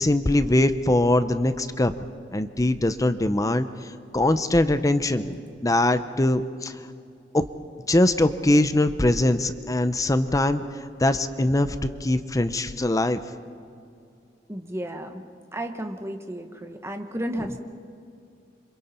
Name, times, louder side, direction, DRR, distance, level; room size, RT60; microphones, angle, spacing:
voice 1, 0.0-1.9 2.3-3.7 4.1-6.7 7.3-7.4 7.9-10.6 11.0-11.8 12.0-13.2, left 1 dB, 20° left, 11 dB, 0.7 m, -22 dB
voice 2, 14.5-15.2 15.5-17.6, right 1 dB, 15° right, 4 dB, 1.5 m, -33 dB
27.5 x 26.5 x 4.4 m, 2.4 s
head